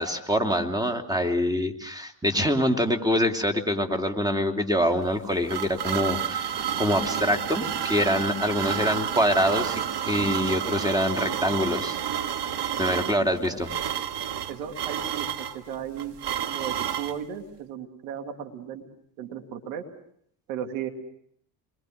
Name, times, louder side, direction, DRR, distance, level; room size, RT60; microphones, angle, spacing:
voice 1, 0.0-12.0 12.4-12.5 12.8-13.7, equal, 10° right, 5 dB, 2.8 m, -25 dB
sound 1, 5.0-17.2, right 9 dB, 55° right, 1.8 m, -30 dB
voice 2, 14.5-15.3 15.5-16.1 16.4-18.8 19.2-19.8 20.5-20.9, right 8 dB, 80° right, 5 dB, 2.6 m, -35 dB
28.5 x 22.5 x 6.5 m, 0.68 s
hypercardioid pair, 65°, 50 cm